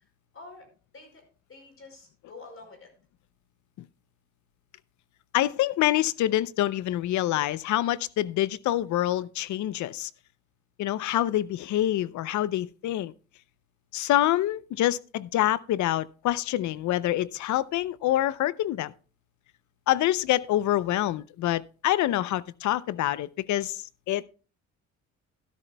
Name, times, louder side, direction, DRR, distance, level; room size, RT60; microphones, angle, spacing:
voice 1, 0.3-0.7 0.9-1.2 1.5-2.9, left 3 dB, 45° left, 5.2 m, -47 dB
voice 2, 5.3-10.1 10.8-13.1 13.9-18.9 19.9-24.2, left 13 dB, 75° left, 0.6 m, -26 dB
12.5 x 12.5 x 2.2 m
cardioid pair, 90°, 30 cm